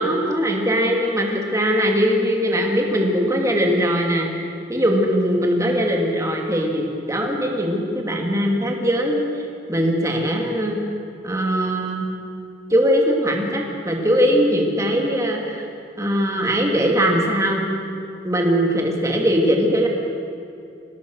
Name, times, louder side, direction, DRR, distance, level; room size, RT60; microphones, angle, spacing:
voice 1, 0.0-4.3 4.7-9.3 9.7-10.8 11.2-12.1 12.7-15.6 16.0-17.7 18.2-19.9, equal, 15° right, 0 dB, 2.7 m, -20 dB
25.5 x 19.0 x 6.6 m, 2.6 s
head